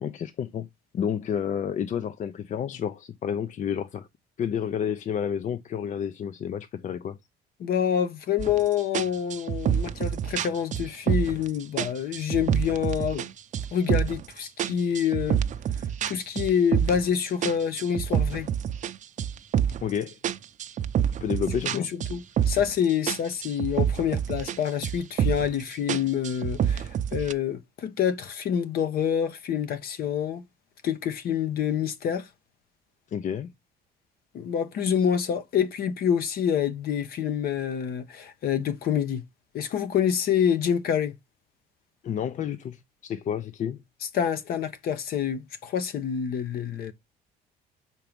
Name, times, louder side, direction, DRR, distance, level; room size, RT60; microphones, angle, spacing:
voice 1, 0.0-0.7 0.9-4.1 4.4-7.2 19.8-20.2 21.2-21.9 33.1-33.5 42.0-43.8, left 8 dB, 45° left, 0.6 m, -30 dB
voice 2, 7.6-13.3 13.7-15.4 16.1-18.5 21.7-30.4 30.8-32.3 34.3-39.2 39.5-41.1 44.1-46.9, left 8 dB, 65° left, 1.1 m, -27 dB
sound 1, 8.4-8.6 8.9-11.5 11.8-13.3 13.5-14.3 14.6-17.1 17.4-19.9 20.2-22.8 23.1-24.6 24.8-25.5 25.9-27.3, right 9 dB, 45° right, 0.6 m, -27 dB
5.9 x 4.6 x 5.2 m
cardioid pair, 110°, 17 cm